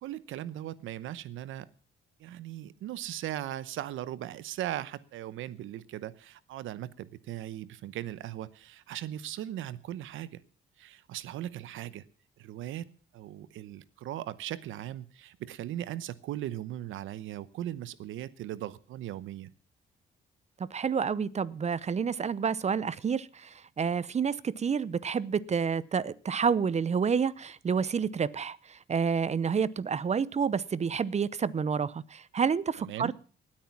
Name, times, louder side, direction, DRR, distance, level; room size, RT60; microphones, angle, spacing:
voice 1, 0.0-1.7 2.2-10.4 10.8-12.0 12.4-19.5 32.8-33.1, right 13 dB, 85° right, 17 dB, 0.9 m, -38 dB
voice 2, 20.7-33.1, right 6 dB, 35° right, 21 dB, 0.7 m, -29 dB
19.0 x 8.8 x 5.9 m, 0.40 s
cardioid pair, 90°, 20 cm